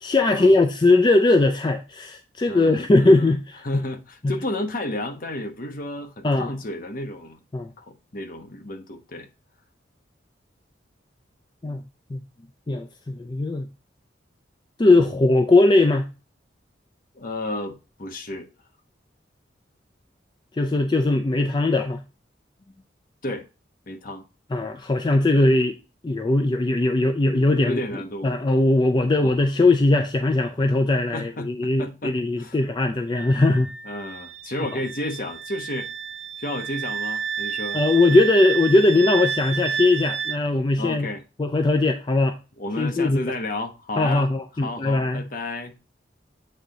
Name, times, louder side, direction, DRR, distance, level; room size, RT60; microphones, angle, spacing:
voice 1, 0.0-3.6 4.2-4.3 6.2-6.5 7.5-7.7 11.6-11.8 12.1-12.2 12.7-13.7 14.8-16.1 20.6-22.0 24.5-25.8 26.0-27.8 28.2-33.7 37.7-41.1 41.4-42.4 42.8-43.3 44.0-45.2, left 2 dB, 25° left, 0.4 m, -20 dB
voice 2, 2.5-3.3 3.6-7.4 7.8-9.3 17.1-18.5 23.2-23.4 23.9-24.2 27.6-28.3 29.2-29.3 31.1-32.6 33.8-35.9 36.4-37.8 40.8-41.2 42.6-45.7, left 1 dB, 50° left, 1.0 m, -32 dB
Wind instrument woodwind instrument, 33.1-40.4, right 7 dB, 70° right, 0.5 m, -31 dB
7.7 x 3.5 x 3.8 m
head